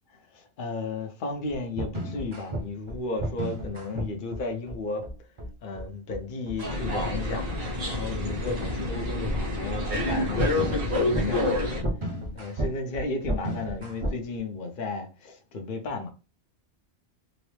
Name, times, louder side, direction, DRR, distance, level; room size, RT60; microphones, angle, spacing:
voice 1, 0.3-5.1 5.6-11.5 12.3-16.1, left 3 dB, 50° left, 0.8 m, -34 dB
sound 1, 1.5-14.2, right 1 dB, 30° right, 0.7 m, -33 dB
sound 2, 6.6-11.8, left 1 dB, 55° right, 1.4 m, -28 dB
3.9 x 2.0 x 3.1 m
omnidirectional pair, 1.1 m